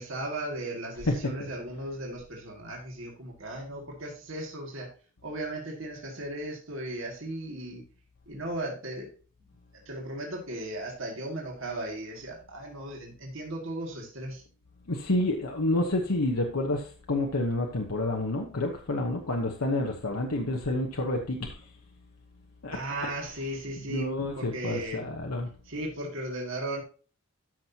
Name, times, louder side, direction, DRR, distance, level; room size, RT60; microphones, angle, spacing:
voice 1, 0.0-4.9 5.2-7.8 8.3-9.1 9.9-14.4 22.7-24.1 24.4-25.0 25.7-26.8, right 1 dB, 60° right, 0 dB, 2.2 m, -36 dB
voice 2, 1.1-1.5 14.9-21.6 22.6-23.1 23.9-25.5, left 2 dB, 90° left, 2 dB, 1.1 m, -29 dB
13.5 x 6.1 x 2.9 m, 0.38 s
head